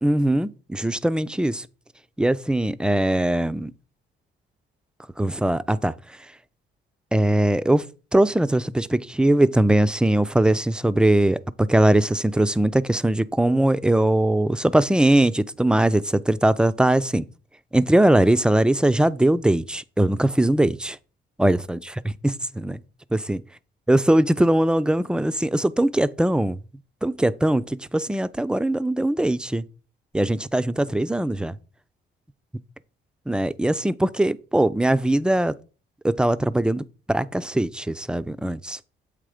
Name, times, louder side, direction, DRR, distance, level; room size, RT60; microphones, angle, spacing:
voice 1, 0.0-1.7 2.2-3.7 5.2-5.9 7.1-7.8 8.1-17.2 17.7-21.0 21.4-21.8 22.6-22.8 23.1-23.4 23.9-26.6 27.0-29.6 30.1-31.6 33.3-35.5 36.0-38.8, right 1 dB, 5° right, 0.3 m, -21 dB
7.9 x 3.4 x 4.9 m
cardioid pair, 90°, 20 cm